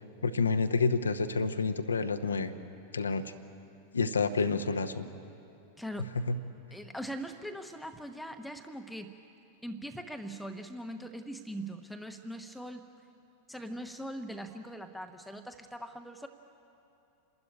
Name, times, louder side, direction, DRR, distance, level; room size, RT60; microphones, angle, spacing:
voice 1, 0.2-2.5 2.9-3.3 3.9-5.1 6.3-6.4, left 4 dB, 75° left, 8 dB, 0.9 m, -29 dB
voice 2, 5.8-6.1 6.7-9.2 9.6-12.9 13.5-16.3, right 1 dB, ahead, 6 dB, 1.0 m, -41 dB
27.5 x 12.5 x 10.0 m, 2.8 s
figure-of-eight pair, 90°, 0 cm